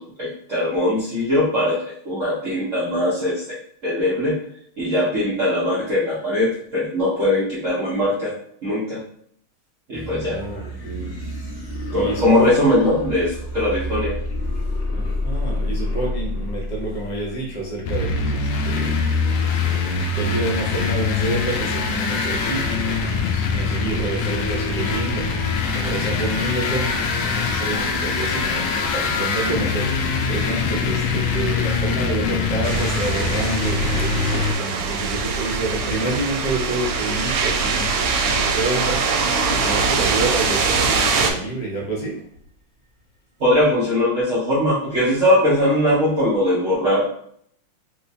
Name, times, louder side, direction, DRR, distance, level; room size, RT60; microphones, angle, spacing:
voice 1, 0.0-3.4 3.8-4.4 4.8-8.4 8.6-9.0 9.9-10.4 11.9-14.2 43.4-47.1, left 1 dB, 60° right, -9 dB, 0.8 m, -20 dB
sound 1, 9.9-17.9, left 1 dB, 45° left, 1.1 m, -29 dB
voice 2, 10.3-11.2 11.9-12.5 14.9-18.9 19.6-25.3 25.7-39.2 39.5-42.3, right 2 dB, 65° left, -4 dB, 0.4 m, -28 dB
sound 2, 17.8-34.5, left 4 dB, 90° left, 1.5 m, -23 dB
sound 3, 32.6-41.3, right 5 dB, 85° right, 1.5 m, -22 dB
4.2 x 2.2 x 2.7 m, 0.64 s
omnidirectional pair, 2.4 m